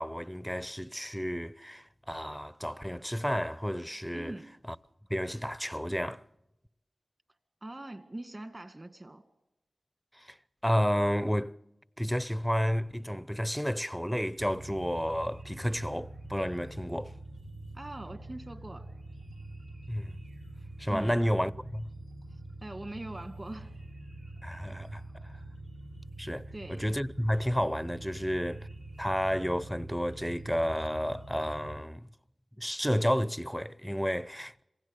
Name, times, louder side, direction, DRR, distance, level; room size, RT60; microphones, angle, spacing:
voice 1, 0.0-4.3 4.7-4.8 5.1-6.2 10.1-10.4 10.6-11.6 12.0-17.2 19.9-20.2 20.8-21.9 24.4-25.3 26.2-28.7 29.0-32.1 32.6-34.6, equal, ahead, 0.7 m, -31 dB
voice 2, 4.1-4.5 7.6-9.2 17.7-18.9 20.9-21.2 22.6-23.7 26.5-26.8, right 1 dB, 35° right, 2.1 m, -42 dB
sound 1, 14.4-31.8, right 1 dB, 90° right, 4.9 m, -45 dB
26.5 x 17.0 x 6.7 m
cardioid pair, 50°, 0 cm